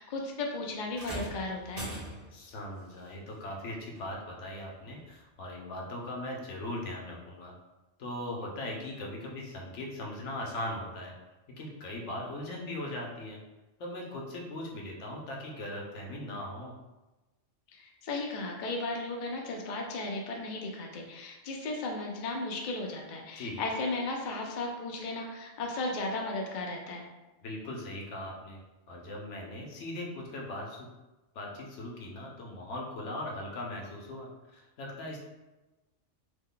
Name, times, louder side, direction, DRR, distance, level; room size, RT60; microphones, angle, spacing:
voice 1, 0.0-1.9 17.7-27.1, left 2 dB, 60° left, 0 dB, 0.5 m, -35 dB
sound 1, 0.9-2.5 3.9-4.1 5.0-5.1, right 1 dB, 50° right, 1.0 m, -40 dB
voice 2, 2.3-7.5 8.0-11.1 11.6-13.4 13.8-16.7 23.4-23.6 27.4-28.6 28.9-30.9 31.3-35.2, left 1 dB, 75° left, -1 dB, 1.0 m, -39 dB
3.1 x 2.1 x 3.7 m, 1.1 s
omnidirectional pair, 1.3 m